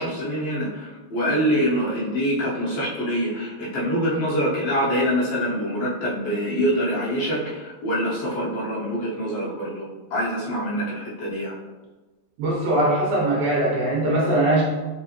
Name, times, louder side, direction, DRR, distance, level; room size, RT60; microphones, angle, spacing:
voice 1, 0.0-11.5, equal, 60° left, -7 dB, 2.1 m, -25 dB
voice 2, 12.4-14.6, right 1 dB, 70° right, -5 dB, 2.3 m, -21 dB
5.2 x 3.3 x 3.0 m, 1.2 s
omnidirectional pair, 3.6 m